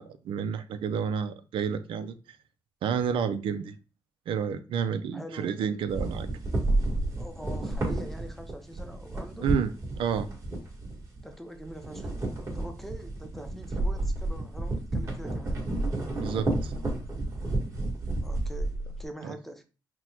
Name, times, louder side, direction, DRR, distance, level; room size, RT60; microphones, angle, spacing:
voice 1, 0.0-2.2 2.8-3.7 4.3-6.3 9.4-9.7 10.0-10.3 16.2-16.7 19.2-19.3, right 7 dB, 85° right, 10 dB, 0.4 m, -30 dB
voice 2, 5.1-5.8 7.2-9.6 11.2-15.7 18.2-19.6, right 1 dB, 5° left, 6 dB, 0.7 m, -44 dB
sound 1, 5.9-11.3 11.6-19.1, right 2 dB, 35° right, 1.8 m, -31 dB
6.0 x 2.2 x 2.9 m, 0.33 s
cardioid pair, 100°, 9 cm